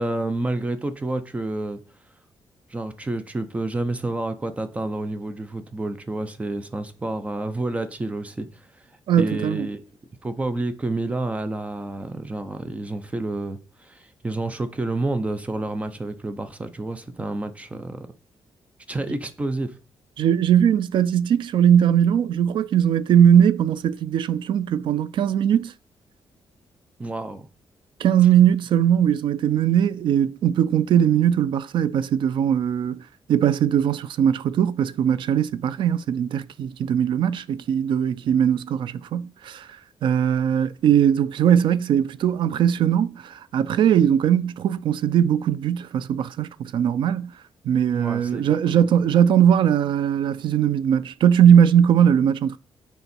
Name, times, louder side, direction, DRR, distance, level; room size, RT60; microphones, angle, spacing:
voice 1, 0.0-1.8 2.7-8.5 9.2-9.8 10.2-18.1 18.9-19.7 27.0-27.5 47.9-48.9, right 2 dB, 15° right, 0.7 m, -29 dB
voice 2, 9.1-9.7 20.2-25.7 28.0-33.0 33.3-39.7 40.0-47.3 47.6-52.6, right 9 dB, 65° right, 0.4 m, -20 dB
6.8 x 4.8 x 4.3 m
wide cardioid pair, 165°, 9 cm